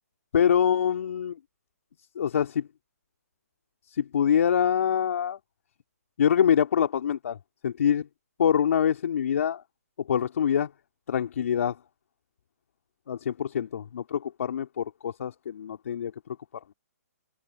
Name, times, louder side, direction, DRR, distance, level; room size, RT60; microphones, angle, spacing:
voice 1, 0.3-1.3 2.1-2.6 3.9-5.4 6.2-7.4 7.6-8.1 8.4-9.6 10.1-10.7 11.1-11.7 13.1-16.1, left 8 dB, 60° left, 3.2 m, -25 dB
hypercardioid pair, 140°, 9 cm